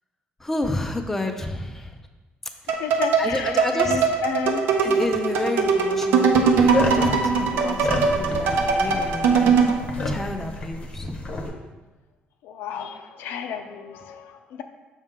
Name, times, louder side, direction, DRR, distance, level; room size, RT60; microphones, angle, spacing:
voice 1, 0.4-2.0 3.2-4.0 4.8-9.6 10.0-11.2, left 2 dB, 10° left, 5 dB, 0.4 m, -30 dB
sound 1, 2.7-9.8, right 5 dB, 70° right, 0.7 m, -21 dB
voice 2, 2.8-4.6 12.4-14.6, left 7 dB, 80° left, 7 dB, 0.6 m, -32 dB
sound 2, 6.5-11.5, left 2 dB, 35° left, 0.8 m, -30 dB
6.6 x 5.3 x 3.7 m, 1.2 s
cardioid pair, 165°, 4 cm